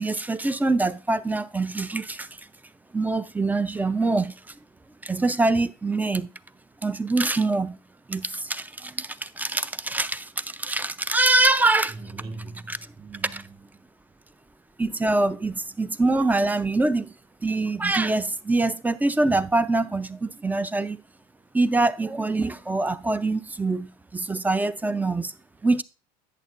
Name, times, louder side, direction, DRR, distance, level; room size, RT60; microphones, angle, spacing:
voice 1, 0.0-2.3 2.9-4.3 5.0-6.3 6.8-7.8 8.1-12.0 12.7-12.8 14.8-17.1 17.4-21.0 21.5-25.3 25.6-25.8, right 2 dB, 10° right, 0.5 m, -24 dB
voice 2, 3.5-4.0 11.9-13.9, right 3 dB, 25° right, 3.1 m, -42 dB
11.0 x 8.4 x 2.5 m
hypercardioid pair, 90°, 19 cm